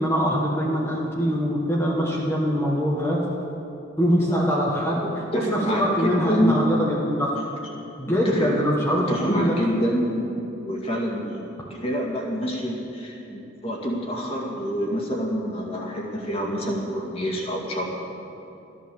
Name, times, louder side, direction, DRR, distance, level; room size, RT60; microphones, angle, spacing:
voice 1, 0.0-3.2 4.0-5.0 5.3-7.4 8.0-9.5, equal, 15° left, -5 dB, 1.5 m, -23 dB
voice 2, 5.0-6.6 8.1-8.6 8.9-11.4 11.7-17.9, equal, 30° left, -2 dB, 2.2 m, -27 dB
15.0 x 11.0 x 7.0 m, 2.9 s
head